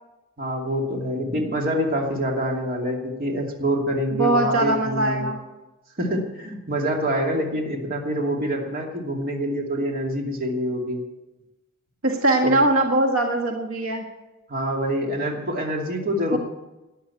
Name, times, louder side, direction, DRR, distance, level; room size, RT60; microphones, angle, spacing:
voice 1, 0.4-5.3 6.0-11.0 12.4-12.6 14.5-16.4, equal, 45° right, 1 dB, 2.7 m, -26 dB
voice 2, 4.2-5.4 12.0-14.1 16.3-16.4, right 2 dB, 80° right, 3 dB, 1.6 m, -21 dB
13.0 x 10.0 x 8.5 m, 1.0 s
head